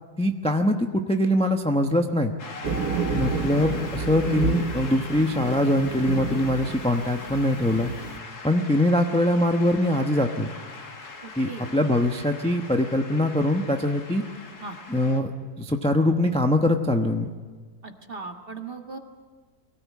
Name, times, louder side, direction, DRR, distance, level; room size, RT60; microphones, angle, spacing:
voice 1, 0.2-2.3 3.1-7.9 8.4-10.5 11.4-14.2 14.9-15.3 15.6-17.3, left 1 dB, 5° left, 4 dB, 0.7 m, -23 dB
Shout / Cheering / Applause, 2.4-15.2, left 3 dB, 75° left, 2.5 m, -40 dB
sound 1, 2.6-8.2, right 5 dB, 70° right, 1.6 m, -30 dB
voice 2, 11.2-11.7 14.6-14.8 17.8-19.0, right 4 dB, 35° right, 4 dB, 1.7 m, -38 dB
24.0 x 17.0 x 8.4 m, 1.5 s
omnidirectional pair, 1.7 m